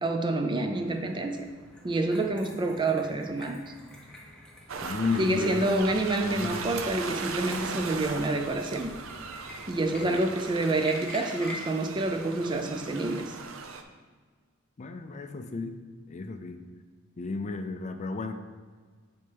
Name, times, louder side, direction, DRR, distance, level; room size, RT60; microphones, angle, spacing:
voice 1, 0.0-1.5 1.8-3.6 5.2-8.9 9.7-13.4, right 2 dB, 25° right, 5 dB, 0.4 m, -28 dB
sound 1, 0.7-13.3, left 1 dB, 5° left, 0.9 m, -48 dB
sound 2, 4.7-13.8, right 5 dB, 80° right, 0.5 m, -38 dB
voice 2, 4.8-5.8 6.2-6.6 10.0-10.2 14.8-15.7 16.1-16.6 17.2-18.3, left 4 dB, 35° left, 7 dB, 0.4 m, -33 dB
7.6 x 4.3 x 3.4 m, 1.5 s
head